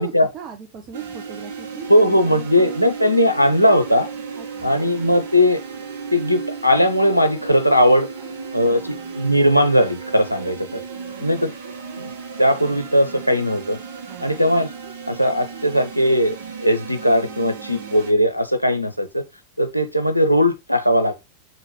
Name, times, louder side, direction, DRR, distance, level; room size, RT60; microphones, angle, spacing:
voice 1, 0.0-2.9 4.3-4.8 8.2-8.3 8.6-9.2 10.4-11.2 14.0-14.5, right 6 dB, 35° right, 0.9 m, -40 dB
sound 1, 0.9-18.1, right 5 dB, 60° right, 1.7 m, -34 dB
voice 2, 1.9-4.1 4.6-5.6 6.1-8.1 8.5-10.8 11.2-11.5 12.0-12.1 12.4-13.8 14.2-14.7 15.0-19.2 19.6-21.1, equal, 90° left, 0.6 m, -18 dB
7.0 x 4.1 x 3.6 m
figure-of-eight pair, 90°, 0 cm